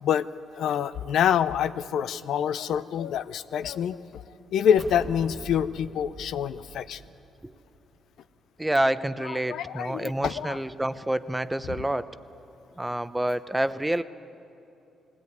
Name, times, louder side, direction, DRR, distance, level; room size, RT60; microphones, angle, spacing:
voice 1, 0.6-4.2 4.5-7.0 9.2-10.6 11.7-11.8, left 9 dB, 75° left, 13 dB, 0.6 m, -26 dB
sound 1, 4.8-8.2, right 4 dB, 45° right, 1.3 m, -43 dB
voice 2, 8.6-12.1 12.8-14.0, right 1 dB, 10° right, 13 dB, 0.6 m, -28 dB
20.0 x 17.0 x 9.5 m, 2.8 s
cardioid pair, 90°, 0 cm